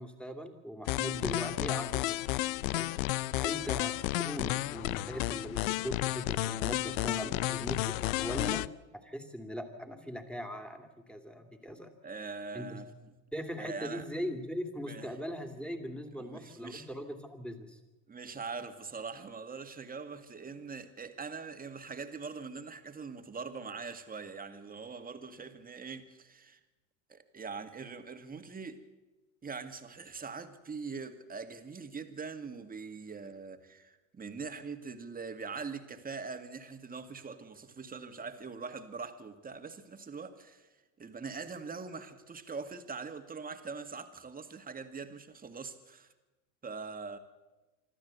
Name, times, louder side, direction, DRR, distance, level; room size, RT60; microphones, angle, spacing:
voice 1, 0.0-2.2 2.7-2.9 3.4-4.0 4.2-8.6 8.9-11.9 12.5-12.8 13.3-17.8, equal, ahead, 2.7 m, -40 dB
sound 1, 0.9-8.7, left 18 dB, 75° left, 0.7 m, -32 dB
voice 2, 12.0-12.9 13.6-14.1 14.9-15.1 16.1-16.9 18.1-26.6 27.1-28.8 29.4-40.7 41.0-46.1 46.6-47.2, right 4 dB, 20° right, 2.0 m, -42 dB
26.0 x 12.5 x 8.1 m
hypercardioid pair, 90°, 41 cm